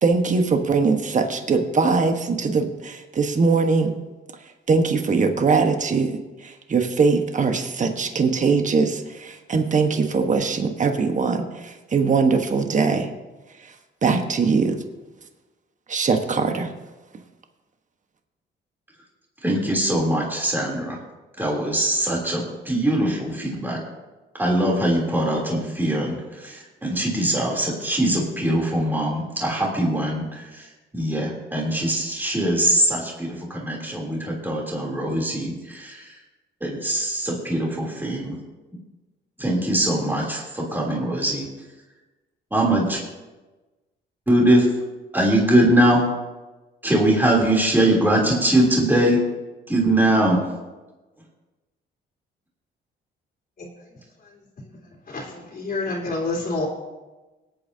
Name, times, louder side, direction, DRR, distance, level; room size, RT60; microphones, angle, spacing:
voice 1, 0.0-3.9 4.7-13.1 13.6-13.7 14.0-14.8 15.9-16.7, right 4 dB, 40° right, 6 dB, 1.3 m, -21 dB
voice 2, 19.4-21.0 21.4-23.8 24.4-30.7 30.9-36.1 36.6-38.3 39.4-41.5 42.5-43.0 44.3-44.7 45.1-46.0 46.8-49.2 49.7-50.4, right 1 dB, 10° right, -2 dB, 3.3 m, -22 dB
voice 3, 55.1-56.7, left 2 dB, 45° left, -3 dB, 3.2 m, -28 dB
23.5 x 8.9 x 2.8 m, 1.2 s
cardioid pair, 90°, 20 cm